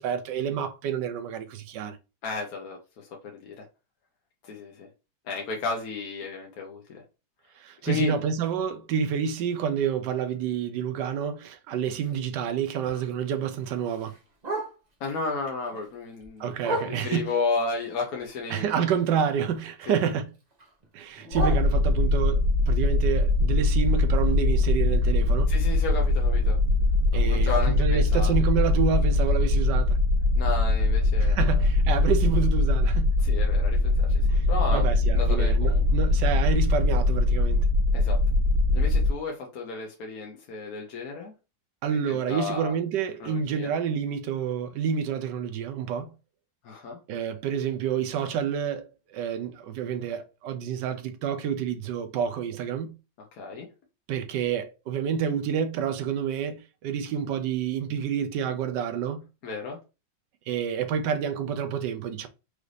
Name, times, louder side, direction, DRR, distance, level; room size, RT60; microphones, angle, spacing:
voice 1, 0.0-2.0 7.6-14.1 16.4-17.3 18.5-20.3 20.9-25.5 27.1-30.0 31.2-33.1 34.3-34.5 34.7-37.7 41.8-46.1 47.1-52.9 54.1-59.3 60.5-62.3, right 8 dB, 70° right, 1.2 m, -29 dB
voice 2, 2.2-3.7 4.4-4.9 5.2-7.0 7.8-8.2 15.0-18.9 19.9-20.0 25.5-26.6 27.1-28.4 30.4-31.7 33.2-34.8 35.1-35.8 37.9-38.2 38.7-41.3 42.1-42.7 43.2-43.7 46.6-47.0 53.3-53.7 59.4-59.8, left 4 dB, 60° left, 1.1 m, -33 dB
Bark, 11.9-15.1 15.5-17.4 17.8-19.7 19.9-22.3 22.7-26.6 27.0-27.1 27.4-27.7 28.2-28.3 28.6-28.7 29.2-29.3, right 2 dB, 30° right, 0.8 m, -39 dB
sound 1, 21.3-39.1, left 2 dB, 50° right, 1.3 m, -22 dB
4.9 x 2.6 x 3.2 m
omnidirectional pair, 2.1 m